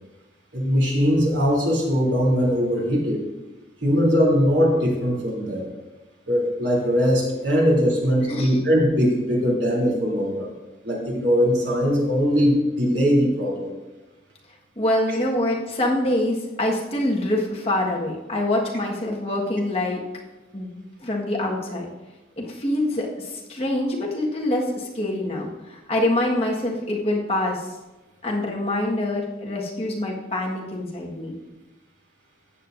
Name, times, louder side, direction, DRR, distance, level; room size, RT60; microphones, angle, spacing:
voice 1, 0.5-3.2 3.8-5.7 6.3-10.5 10.8-13.7, equal, 80° right, -3 dB, 3.1 m, -21 dB
voice 2, 14.8-20.0 20.5-21.9 22.4-27.7 28.2-31.3, left 1 dB, 35° left, -2 dB, 1.6 m, -25 dB
14.0 x 8.8 x 2.6 m, 1.1 s
head